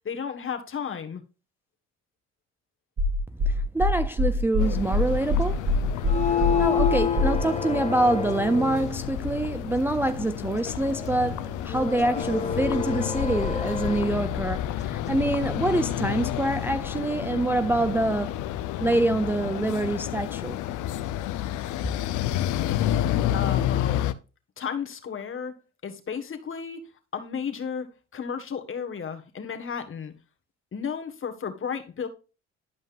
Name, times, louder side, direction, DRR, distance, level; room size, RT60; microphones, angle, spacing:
voice 1, 0.0-1.2 23.3-24.0 24.6-25.6 25.8-26.8 27.1-30.1 30.7-32.1, left 7 dB, 45° left, 1.5 m, -33 dB
sound 1, 3.0-7.4, left 2 dB, 45° right, 2.3 m, -23 dB
voice 2, 3.5-5.6 6.2-18.4 18.8-20.6, right 2 dB, 5° right, 0.4 m, -26 dB
sound 2, 4.6-24.1, left 11 dB, 80° left, 0.6 m, -30 dB
sound 3, 5.9-9.0 10.5-14.4, left 7 dB, 25° left, 1.3 m, -29 dB
11.5 x 5.3 x 2.5 m
supercardioid pair, 70°, 30 cm